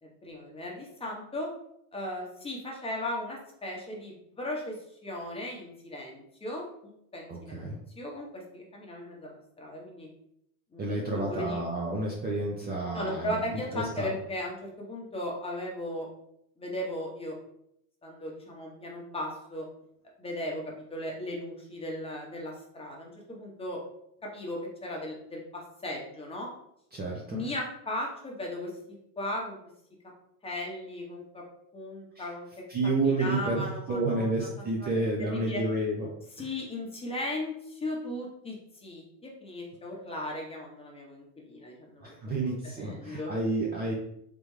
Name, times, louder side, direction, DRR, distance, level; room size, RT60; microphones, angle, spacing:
voice 1, 0.0-1.5 1.9-4.7 5.0-6.6 7.1-10.1 10.7-10.8 11.1-11.6 12.9-16.1 16.6-17.4 18.0-19.6 20.2-20.6 20.9-23.8 24.3-26.5 27.3-28.7 29.2-29.6 30.4-31.4 31.7-32.5 32.8-32.9 33.2-34.9 35.2-35.6 36.4-42.1 42.8-43.3, left 1 dB, 15° left, -2 dB, 1.0 m, -37 dB
voice 2, 7.3-7.8 10.8-14.1 26.9-27.4 32.1-32.2 32.7-36.1 36.4-36.5 42.0-43.9, right 2 dB, 20° right, -2 dB, 0.6 m, -30 dB
3.5 x 3.3 x 3.1 m, 0.75 s
supercardioid pair, 110°, 45 cm